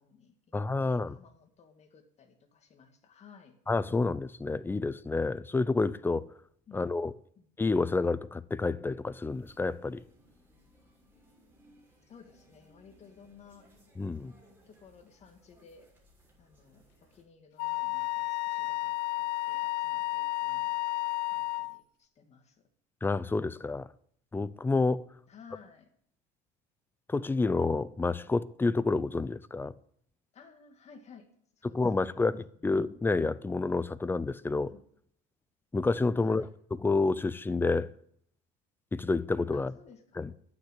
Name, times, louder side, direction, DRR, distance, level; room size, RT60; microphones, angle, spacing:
voice 1, 0.0-0.5 0.8-3.6 6.7-6.9 7.4-7.5 12.1-13.7 14.4-15.9 16.4-20.8 21.3-22.7 25.3-25.9 30.3-31.3 31.6-32.8 34.6-34.8 36.2-36.5 39.5-40.2, left 6 dB, 35° left, 2.4 m, -56 dB
voice 2, 0.5-1.2 3.7-6.3 6.7-7.1 7.6-10.0 14.0-14.3 23.0-23.9 24.3-25.0 27.1-29.7 31.6-34.7 35.7-36.5 36.8-37.9 38.9-39.7 40.2-40.3, left 3 dB, 10° left, 0.5 m, -29 dB
sound 1, 9.3-17.2, equal, 10° right, 6.4 m, -62 dB
Wind instrument woodwind instrument, 17.6-21.8, left 20 dB, 70° left, 0.5 m, -32 dB
12.0 x 9.0 x 10.0 m
cardioid pair, 125°, 19 cm